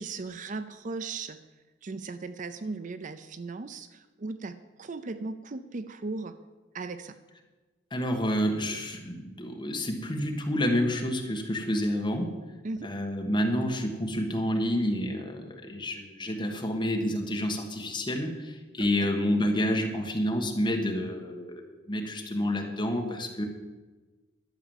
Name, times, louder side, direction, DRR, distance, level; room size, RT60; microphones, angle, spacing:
voice 1, 0.0-1.4 1.8-6.4 6.7-7.2 9.8-9.9 12.6-12.9 18.8-19.1, right 3 dB, 40° right, 12 dB, 0.5 m, -37 dB
voice 2, 7.9-12.4 12.8-23.4, equal, 25° left, 2 dB, 1.6 m, -29 dB
12.0 x 7.2 x 7.2 m, 1.2 s
head